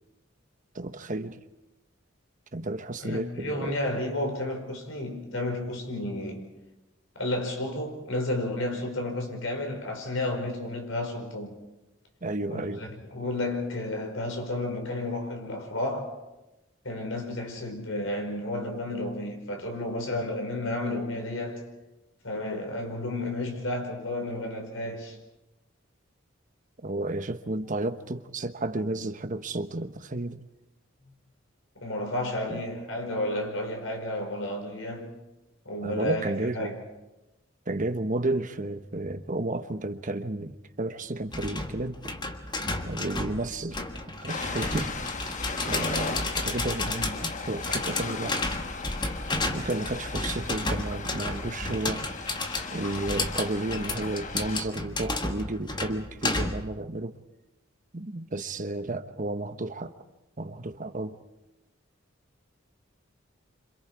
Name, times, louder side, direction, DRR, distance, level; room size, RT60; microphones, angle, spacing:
voice 1, 0.7-1.4 2.5-3.7 12.2-12.8 26.8-30.4 32.5-32.6 35.8-36.7 37.7-42.0 42.9-43.8 44.2-45.1 45.7-48.4 49.5-52.0 52.7-57.2 57.9-59.9 60.4-61.2, right 2 dB, 40° right, 1.1 m, -32 dB
voice 2, 3.0-6.5 7.2-11.6 12.5-16.1 16.8-21.7 22.2-25.2 31.7-35.1 35.6-36.8, left 1 dB, 80° left, 5.0 m, -32 dB
sound 1, 41.3-56.7, left 2 dB, 25° left, 1.5 m, -32 dB
Ocean, 44.3-54.6, left 4 dB, 40° left, 1.3 m, -37 dB
28.5 x 26.0 x 4.8 m
head